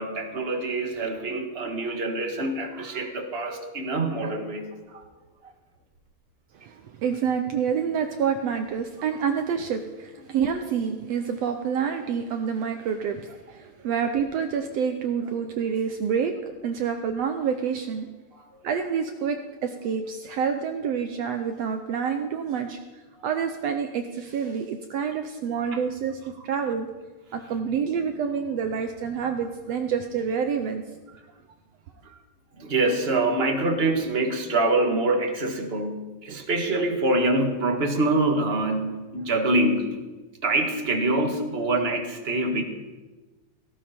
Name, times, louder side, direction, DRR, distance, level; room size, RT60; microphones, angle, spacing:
voice 1, 0.0-5.0 5.4-5.5 18.3-18.4 25.7-25.8 32.0-32.2 32.6-40.0 40.4-42.6, right 2 dB, 35° right, 4 dB, 1.1 m, -25 dB
voice 2, 6.6-18.1 18.6-22.8 23.2-26.9 27.3-30.8, right 7 dB, 70° right, 6 dB, 1.7 m, -28 dB
18.0 x 16.0 x 4.4 m, 1.2 s
omnidirectional pair, 3.5 m